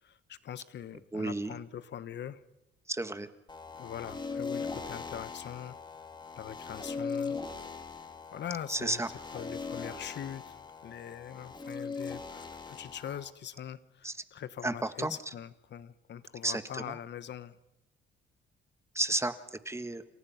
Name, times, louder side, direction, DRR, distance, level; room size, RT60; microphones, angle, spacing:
voice 1, 0.0-2.4 3.8-5.8 6.3-7.4 8.3-9.0 9.3-17.6, left 9 dB, 60° left, 14 dB, 1.3 m, -42 dB
voice 2, 1.1-1.5 2.9-3.3 8.7-9.1 14.0-14.1 14.6-15.2 16.4-17.0 18.9-20.0, right 2 dB, 15° right, 11 dB, 1.6 m, -32 dB
sound 1, 3.5-13.3, left 4 dB, 20° left, 3.3 m, -40 dB
29.0 x 28.0 x 5.9 m, 0.93 s
cardioid pair, 90°, 20 cm